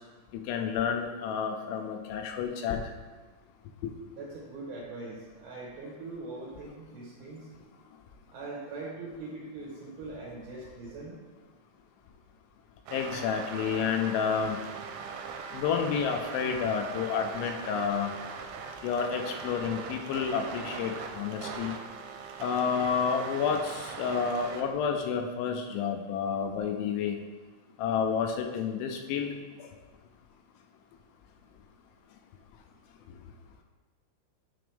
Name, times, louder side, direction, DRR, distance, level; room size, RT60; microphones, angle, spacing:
voice 1, 0.5-2.8 3.8-3.9 12.9-14.6 15.5-18.1 18.8-21.7 22.4-27.2 27.8-29.3 29.6-29.7, left 6 dB, 85° left, 3 dB, 2.9 m, -30 dB
voice 2, 4.1-7.5 8.3-11.2, right 3 dB, 70° right, -5 dB, 2.6 m, -41 dB
sound 1, 12.9-24.6, right 6 dB, 85° right, 3.0 m, -40 dB
9.4 x 4.9 x 3.4 m, 1.3 s
omnidirectional pair, 5.6 m